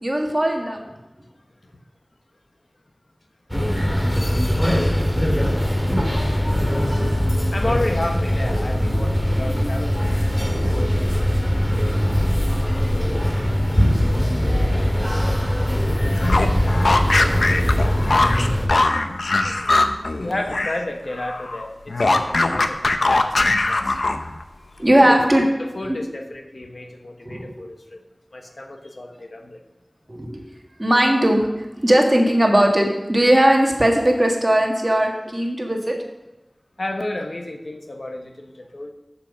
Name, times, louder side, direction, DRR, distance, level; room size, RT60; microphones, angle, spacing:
voice 1, 0.0-0.8 5.6-5.7 6.2-6.4 18.7-19.1 19.3-19.8 22.0-22.1 24.8-25.4 25.9-26.0 27.2-27.5 30.1-30.4 30.8-31.5 31.8-36.0, right 1 dB, 30° right, 1 dB, 1.8 m, -19 dB
sound 1, 3.5-18.7, equal, 10° left, 1.9 m, -21 dB
voice 2, 7.5-10.1 10.6-10.8 20.2-21.7 22.0-24.0 25.0-25.2 25.6-28.0 28.3-29.6 36.8-38.9, left 1 dB, 65° left, 3 dB, 1.1 m, -31 dB
sound 2, 16.1-20.8 21.1-24.4, left 2 dB, 85° left, 0.6 m, -21 dB
7.3 x 6.8 x 5.3 m, 1.0 s
wide cardioid pair, 40°, 0 cm